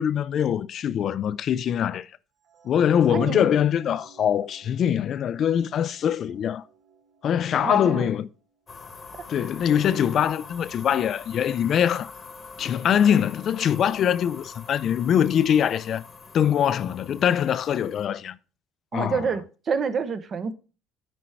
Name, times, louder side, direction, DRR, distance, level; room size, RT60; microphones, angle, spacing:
voice 1, 0.0-2.1 2.6-6.6 7.2-8.3 9.3-12.1 12.6-16.0 16.3-18.4 18.9-19.2, left 9 dB, 45° left, 0.4 m, -23 dB
sound 1, 2.4-8.7, right 7 dB, 60° right, 3.0 m, -53 dB
voice 2, 3.1-3.5 7.6-8.1 18.9-20.5, right 5 dB, 40° right, 0.9 m, -28 dB
sound 2, 8.7-18.1, left 4 dB, 25° left, 1.1 m, -44 dB
10.0 x 4.5 x 4.6 m
cardioid pair, 120°, 0 cm